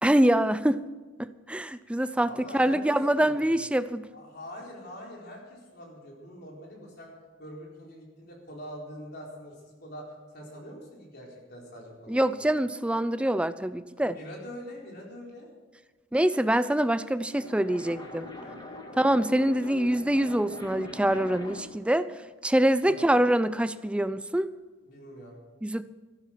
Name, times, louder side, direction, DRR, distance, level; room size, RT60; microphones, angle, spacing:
voice 1, 0.0-0.8 1.2-4.1 12.1-14.2 16.1-18.3 19.0-22.1 22.4-24.5 25.6-25.8, right 1 dB, 5° right, 13 dB, 0.4 m, -25 dB
voice 2, 2.2-3.6 4.1-7.1 7.4-9.5 9.8-12.4 13.9-15.5 17.9-18.1 18.4-18.6 18.8-19.0 22.8-23.1 24.8-25.4, equal, 55° left, -2 dB, 4.2 m, -44 dB
sound 1, 17.1-21.8, left 2 dB, 20° left, 1.9 m, -42 dB
13.5 x 12.0 x 5.8 m, 1.3 s
head